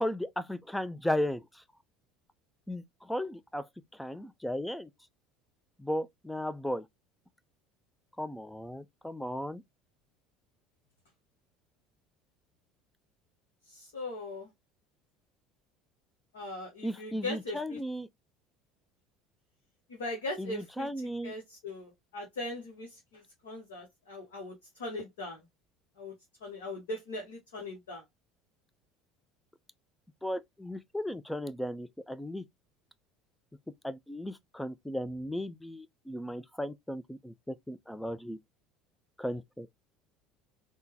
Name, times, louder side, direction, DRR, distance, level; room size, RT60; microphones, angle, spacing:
voice 1, 0.0-1.6 2.7-4.9 5.8-6.8 8.2-9.6 16.8-18.1 20.4-21.3 30.2-32.4 33.8-38.4 39.2-39.7, equal, 5° left, 0.3 m, -35 dB
voice 2, 13.7-14.5 16.3-17.8 19.9-20.9 21.2-24.5 24.8-25.4 26.0-26.1 26.4-28.0, left 2 dB, 70° left, 0.8 m, -40 dB
3.5 x 2.1 x 2.7 m
figure-of-eight pair, 65°, 0 cm